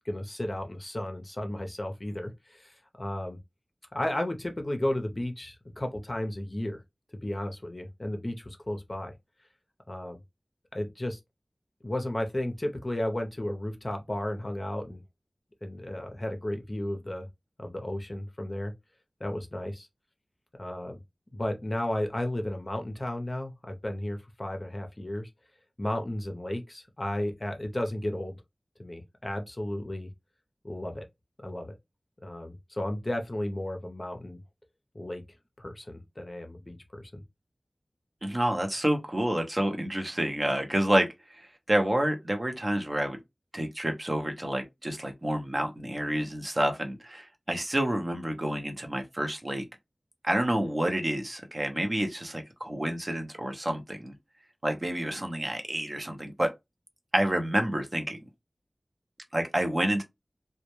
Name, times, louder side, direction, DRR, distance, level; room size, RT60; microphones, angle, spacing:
voice 1, 0.0-3.4 3.9-6.8 7.2-9.1 9.9-10.2 10.7-11.2 11.8-15.0 15.6-17.3 17.6-18.7 19.2-19.9 20.6-21.0 21.3-25.3 25.8-28.4 28.8-30.1 30.6-31.0 31.4-31.7 32.2-34.4 34.9-35.2 35.6-37.2, left 1 dB, 35° left, 0.5 m, -33 dB
voice 2, 38.2-43.2 43.5-49.6 50.2-54.1 54.6-56.5 57.1-58.3 59.3-60.0, right 1 dB, 40° right, 0.6 m, -29 dB
2.1 x 2.1 x 2.9 m
wide cardioid pair, 50°, 0 cm